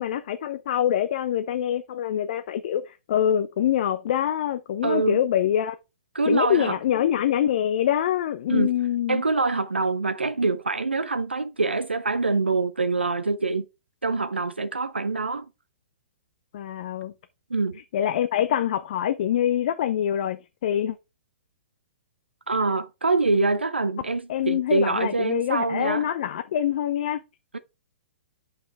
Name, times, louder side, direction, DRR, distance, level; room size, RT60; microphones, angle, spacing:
voice 1, 0.0-5.7 6.3-9.2 16.5-17.1 17.9-21.0 24.3-27.2, left 10 dB, 50° left, 0.6 m, -25 dB
voice 2, 4.8-5.2 6.1-6.8 8.5-8.7 9.1-13.7 14.0-15.5 17.5-17.8 22.5-26.1 27.5-27.6, right 3 dB, 85° right, 0.6 m, -25 dB
9.0 x 5.6 x 3.4 m
figure-of-eight pair, 115°, 6 cm